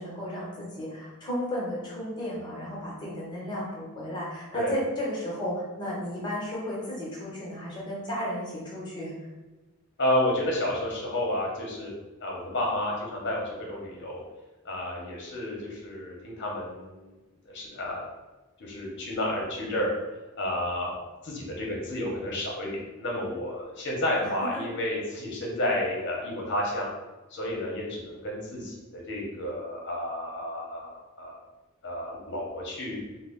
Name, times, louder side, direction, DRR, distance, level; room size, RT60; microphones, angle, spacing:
voice 1, 0.0-9.1 24.2-24.6, equal, 20° left, -6 dB, 0.9 m, -34 dB
voice 2, 10.0-11.9 12.2-14.2 14.6-17.1 17.4-18.0 18.6-19.9 20.4-21.0 21.2-26.9 27.3-31.4 31.8-33.0, left 1 dB, 55° left, -2 dB, 0.8 m, -31 dB
3.1 x 2.0 x 3.7 m, 1.1 s
head